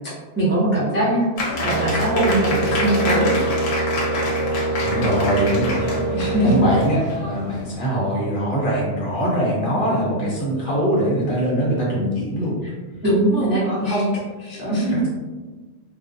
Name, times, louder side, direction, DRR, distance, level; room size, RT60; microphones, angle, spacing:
voice 1, 0.4-1.2 1.6-3.3 6.1-6.6 13.0-14.0 14.5-14.9, right 1 dB, 15° right, -9 dB, 0.3 m, -21 dB
Applause, 1.4-7.7, left 2 dB, 85° left, 0.9 m, -27 dB
Brass instrument, 1.5-7.0, right 2 dB, 60° right, 0.6 m, -25 dB
voice 2, 4.8-12.6 13.6-14.1 14.6-15.1, equal, 55° left, -6 dB, 0.8 m, -23 dB
2.4 x 2.1 x 2.5 m, 1.3 s
omnidirectional pair, 1.2 m